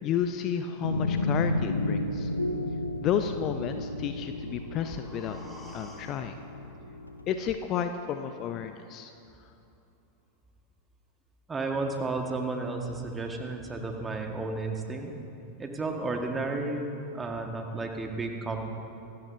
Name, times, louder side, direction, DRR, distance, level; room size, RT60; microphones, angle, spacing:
voice 1, 0.0-2.3 3.0-5.4 5.7-6.4 7.3-9.1, left 8 dB, 35° left, 8 dB, 0.6 m, -31 dB
sound 1, 0.8-7.4, left 2 dB, 85° left, 0.9 m, -32 dB
sound 2, 4.1-8.1 8.5-8.6, equal, 5° left, 1.7 m, -52 dB
voice 2, 11.5-15.2 15.6-18.7, right 3 dB, 15° right, 3 dB, 1.5 m, -32 dB
25.5 x 12.5 x 2.7 m, 2.7 s
figure-of-eight pair, 90°, 0 cm